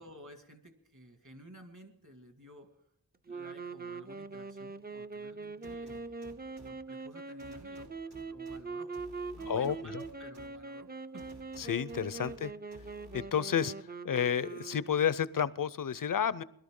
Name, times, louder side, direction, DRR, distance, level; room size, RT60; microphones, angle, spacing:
voice 1, 0.0-2.7 3.3-6.1 6.5-8.9 9.4-11.6 12.1-12.3, equal, 50° right, 6 dB, 2.1 m, -54 dB
sound 1, 3.3-15.1, right 4 dB, 25° right, 0.5 m, -42 dB
sound 2, 5.6-6.7 7.4-8.6 8.9-10.5 11.2-12.4 12.7-13.2, right 1 dB, 85° right, 2.9 m, -53 dB
voice 2, 9.5-9.9 11.6-12.5 13.1-16.4, left 8 dB, 60° left, 19 dB, 0.6 m, -31 dB
21.5 x 12.0 x 3.7 m, 0.72 s
wide cardioid pair, 60°, 38 cm